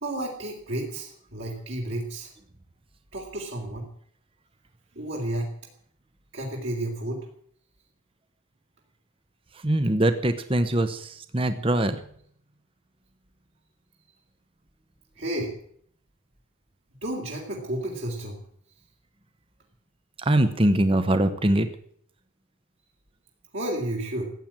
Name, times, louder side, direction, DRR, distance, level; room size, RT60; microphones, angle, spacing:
voice 1, 0.0-2.3 3.1-3.9 4.9-5.5 6.3-7.2 15.2-15.5 17.0-18.4 23.5-24.3, right 1 dB, 60° right, -3 dB, 3.3 m, -31 dB
voice 2, 9.6-11.1 11.3-12.0 20.3-21.7, right 1 dB, 25° right, 10 dB, 1.0 m, -22 dB
15.0 x 9.1 x 8.7 m, 0.63 s
head